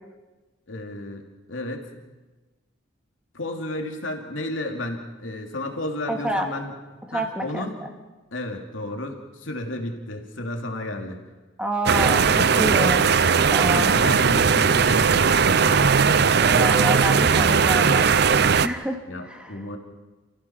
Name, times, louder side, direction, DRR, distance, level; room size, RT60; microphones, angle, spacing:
voice 1, 0.7-1.9 3.3-6.7 7.1-7.8 8.3-11.2 11.9-12.9 13.7-16.0 19.1-19.8, left 1 dB, 80° left, 2 dB, 2.7 m, -32 dB
voice 2, 6.1-6.5 7.1-7.7 11.6-12.3 12.6-13.1 13.5-13.9 16.3-19.0 19.2-19.6, right 1 dB, 5° right, 3 dB, 2.1 m, -28 dB
sound 1, 11.9-18.7, right 6 dB, 55° right, 0.6 m, -18 dB
29.5 x 15.5 x 5.9 m, 1.2 s
head